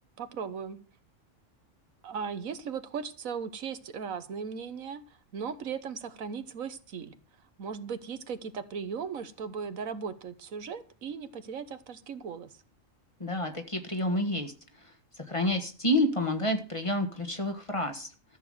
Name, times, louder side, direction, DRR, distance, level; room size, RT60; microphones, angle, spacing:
voice 1, 0.2-0.8 2.0-5.0 5.3-7.1 7.6-12.5, right 6 dB, 85° right, 11 dB, 1.5 m, -37 dB
voice 2, 13.2-14.5 15.3-18.1, left 1 dB, 25° left, 6 dB, 1.6 m, -29 dB
13.5 x 7.0 x 7.8 m, 0.38 s
omnidirectional pair, 1.4 m